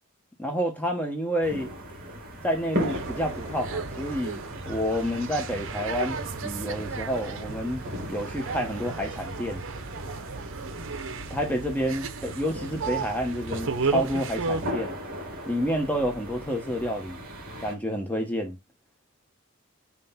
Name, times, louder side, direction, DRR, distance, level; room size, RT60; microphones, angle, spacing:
voice 1, 0.4-1.7 2.3-6.2 6.4-9.6 11.3-14.9 15.4-17.2 17.6-18.6, equal, 10° left, 1.1 m, -29 dB
sound 1, 1.4-17.7, equal, 45° right, 2.5 m, -38 dB
sound 2, 2.7-14.7, right 4 dB, 65° right, 0.8 m, -34 dB
5.9 x 3.2 x 5.6 m
head